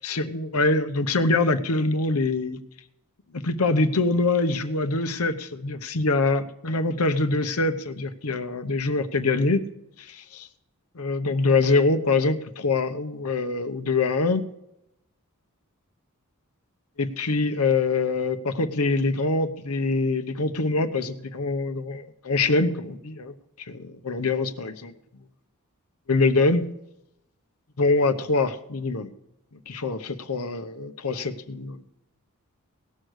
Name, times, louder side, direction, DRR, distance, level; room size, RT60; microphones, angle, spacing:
voice 1, 0.0-2.6 3.3-9.6 10.0-10.5 10.9-14.4 17.0-23.3 23.7-24.9 26.1-26.6 27.8-29.1 29.7-31.8, left 3 dB, 80° left, 11 dB, 0.9 m, -24 dB
18.0 x 6.5 x 6.4 m, 0.83 s
head